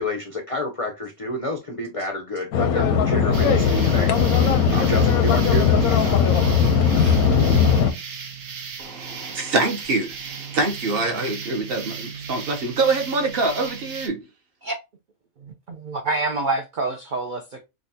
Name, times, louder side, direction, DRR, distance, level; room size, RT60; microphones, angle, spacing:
voice 1, 0.0-6.2, left 1 dB, 60° left, 0.3 m, -30 dB
sound 1, 2.5-7.9, left 6 dB, 85° left, 1.1 m, -18 dB
sound 2, 3.3-14.1, right 6 dB, 85° right, 1.3 m, -36 dB
voice 2, 8.8-14.2, right 3 dB, 50° right, 0.8 m, -25 dB
voice 3, 15.4-17.6, right 3 dB, 70° right, 0.4 m, -27 dB
5.0 x 2.2 x 2.6 m
omnidirectional pair, 1.5 m